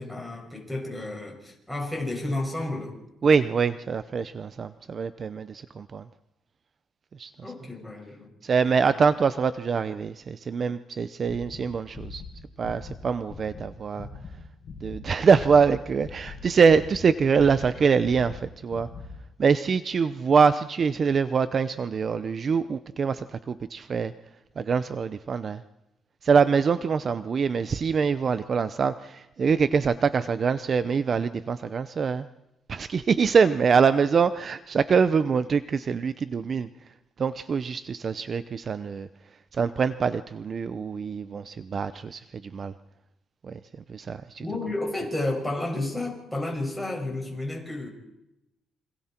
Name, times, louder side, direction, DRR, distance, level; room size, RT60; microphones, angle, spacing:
voice 1, 0.0-3.0 7.4-8.3 44.4-47.9, left 2 dB, 5° left, 0 dB, 6.2 m, -31 dB
voice 2, 3.2-6.1 7.2-7.3 8.4-12.2 12.6-14.1 14.8-18.9 19.4-24.1 24.6-25.6 26.2-32.3 32.7-36.7 37.2-39.1 39.5-42.7 43.4-43.6 43.9-44.5, right 5 dB, 40° right, 13 dB, 0.7 m, -24 dB
sound 1, 11.2-13.7 14.0-14.3 14.6-15.7 16.0-17.1 17.3-19.1, left 4 dB, 45° left, 6.5 m, -41 dB
28.0 x 25.5 x 4.5 m, 0.89 s
cardioid pair, 125°, 0 cm